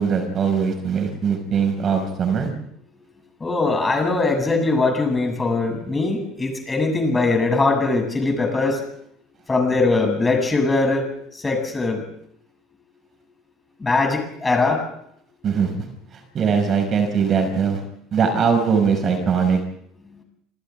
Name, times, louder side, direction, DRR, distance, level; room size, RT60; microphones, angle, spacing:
voice 1, 0.0-2.5 15.4-15.7 16.1-17.8 18.1-19.6, right 6 dB, 40° right, 5 dB, 5.8 m, -21 dB
voice 2, 3.4-8.8 9.5-11.0 11.4-12.0 13.8-14.8, left 3 dB, 20° left, 3 dB, 7.7 m, -21 dB
27.5 x 27.0 x 3.7 m, 0.70 s
figure-of-eight pair, 65°, 0 cm